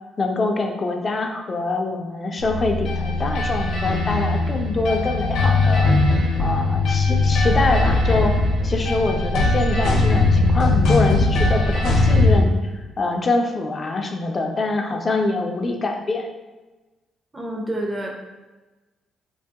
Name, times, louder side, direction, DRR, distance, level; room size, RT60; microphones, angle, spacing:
voice 1, 0.2-5.9 6.4-8.4 8.6-12.6 13.0-16.3, left 3 dB, 35° left, 3 dB, 0.4 m, -24 dB
sound 1, 2.4-12.4, left 2 dB, 80° left, 0.7 m, -19 dB
voice 2, 17.3-18.1, right 1 dB, 20° right, 0 dB, 0.6 m, -28 dB
2.8 x 2.2 x 2.7 m, 1.2 s
cardioid pair, 90°, 0 cm